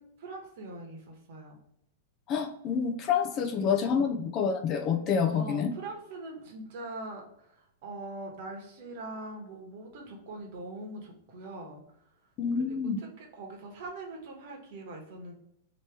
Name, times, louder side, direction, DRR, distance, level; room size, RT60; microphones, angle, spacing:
voice 1, 0.0-1.6 3.5-4.2 5.2-12.1 13.0-15.3, right 2 dB, 55° right, 1 dB, 1.1 m, -43 dB
voice 2, 2.3-5.7 12.4-13.0, left 6 dB, 30° left, 4 dB, 0.5 m, -28 dB
3.0 x 2.9 x 3.3 m, 0.75 s
supercardioid pair, 145°, 0 cm